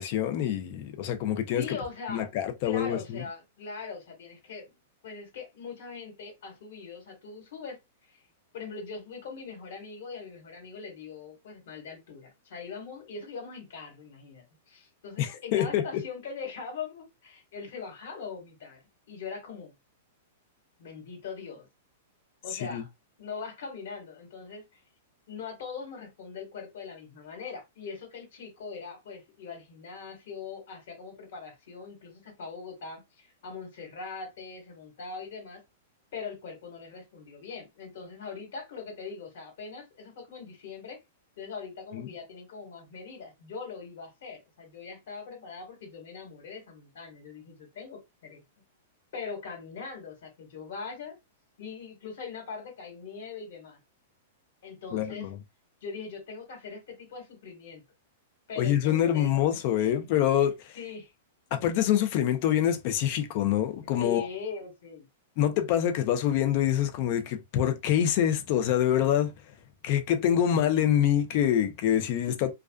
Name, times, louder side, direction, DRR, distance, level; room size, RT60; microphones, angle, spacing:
voice 1, 0.0-1.8 2.1-3.2 15.2-16.0 22.6-22.8 41.9-42.1 54.9-55.3 58.6-60.8 61.5-64.3 65.4-69.3 69.8-72.5, left 10 dB, 45° left, 0.5 m, -26 dB
voice 2, 1.5-2.2 2.6-4.8 5.0-7.8 8.1-8.2 8.5-18.8 19.1-19.7 20.8-21.7 22.4-22.9 23.2-24.6 25.3-35.6 36.1-41.0 41.4-48.4 49.1-51.2 51.6-53.8 54.6-55.3 55.8-57.8 58.5-59.3 59.8-59.9 60.8-61.1 63.9-65.1 72.3-72.4, left 5 dB, 70° left, 1.5 m, -41 dB
2.3 x 2.3 x 2.3 m
hypercardioid pair, 145°, 0 cm